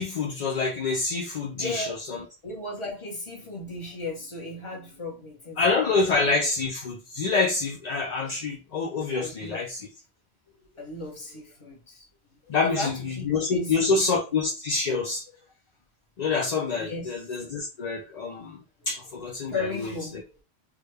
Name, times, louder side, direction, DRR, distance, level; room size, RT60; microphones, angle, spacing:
voice 1, 0.0-2.2 5.6-9.8 12.5-15.2 16.2-18.6 18.9-19.9, left 4 dB, 50° left, 0.5 m, -27 dB
voice 2, 1.5-2.0 2.4-6.2 9.2-9.6 10.7-12.1 12.5-14.2 16.8-17.3 19.5-20.2, left 2 dB, 30° left, 0.9 m, -36 dB
3.5 x 2.2 x 3.2 m
omnidirectional pair, 1.1 m